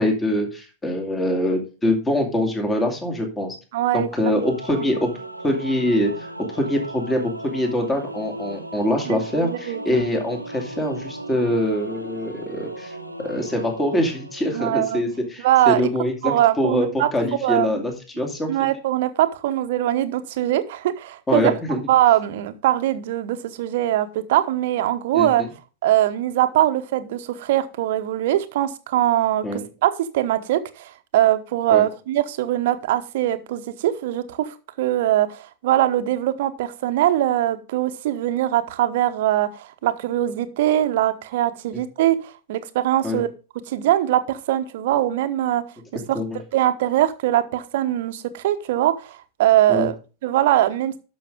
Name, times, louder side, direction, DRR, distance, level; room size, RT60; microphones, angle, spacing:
voice 1, 0.0-3.5 3.9-5.1 5.4-16.9 17.1-18.7 21.3-21.8 25.1-25.5 29.4-29.6 31.7-31.8 43.0-43.2 46.1-46.4 49.7-49.9, left 1 dB, 15° left, 3 dB, 2.3 m, -24 dB
voice 2, 3.7-4.1 4.7-4.8 9.1-9.8 14.5-15.0 15.4-15.8 16.2-17.1 17.4-17.7 18.5-21.5 21.9-25.4 25.8-43.3 43.7-45.6 46.1-46.2 46.5-51.0, right 13 dB, 55° right, 10 dB, 1.0 m, -22 dB
Singing / Musical instrument, 4.1-15.3, right 1 dB, 90° right, 1.0 m, -36 dB
11.5 x 6.4 x 3.5 m, 0.33 s
figure-of-eight pair, 90°, 0 cm